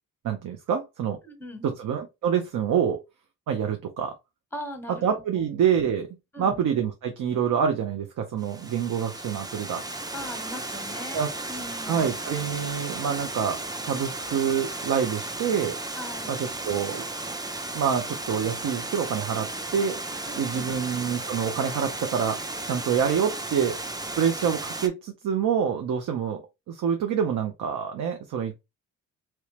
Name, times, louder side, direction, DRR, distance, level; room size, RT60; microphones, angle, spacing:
voice 1, 0.2-1.2 1.6-3.0 3.5-4.1 4.9-6.1 6.4-9.8 11.1-11.3 11.9-15.8 16.3-17.0 17.7-20.0 20.4-22.4 22.6-23.7 24.2-26.4 26.7-28.5, right 7 dB, 65° right, 0.7 m, -26 dB
voice 2, 1.2-1.8 4.5-5.0 5.3-5.4 6.3-6.6 10.1-12.1 16.0-16.4 20.2-20.8, left 1 dB, 5° left, 1.1 m, -39 dB
Water, 8.4-24.9, right 2 dB, 10° right, 0.5 m, -35 dB
3.0 x 2.9 x 3.2 m
cardioid pair, 80°, 33 cm